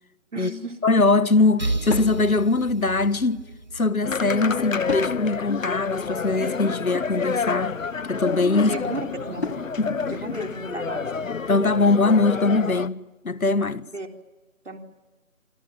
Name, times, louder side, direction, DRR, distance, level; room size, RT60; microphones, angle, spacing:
voice 1, 0.3-0.8 8.6-9.5 10.0-11.1 13.9-14.1 14.7-14.8, right 2 dB, 60° right, 3.9 m, -34 dB
voice 2, 0.8-3.5 3.7-7.8 8.1-8.7 9.8-10.0 11.5-13.9, left 3 dB, 85° left, 1.7 m, -22 dB
Drawer open or close / Wood, 1.2-2.1 3.9-5.2 5.7-6.9 8.2-9.7, left 3 dB, 50° left, 2.9 m, -37 dB
sound 1, 1.6-5.3, right 2 dB, 30° right, 1.1 m, -32 dB
sound 2, 4.0-12.9, left 5 dB, 70° left, 1.1 m, -29 dB
27.5 x 26.5 x 7.1 m
figure-of-eight pair, 170°, 41 cm